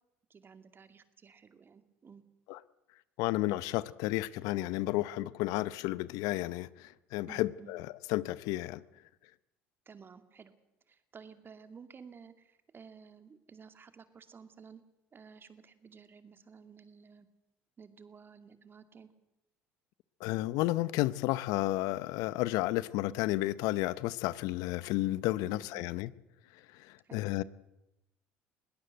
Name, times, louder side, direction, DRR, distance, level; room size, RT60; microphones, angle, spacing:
voice 1, 0.3-2.2 7.3-7.7 9.9-10.5 10.9-14.8 15.1-17.3 17.8-19.1 25.4-25.9 27.0-27.2, right 6 dB, 35° right, 2.5 m, -53 dB
voice 2, 3.2-8.8 20.2-26.1 26.5-27.4, left 17 dB, 70° left, 0.8 m, -32 dB
21.5 x 17.5 x 7.9 m
hypercardioid pair, 70°, 6 cm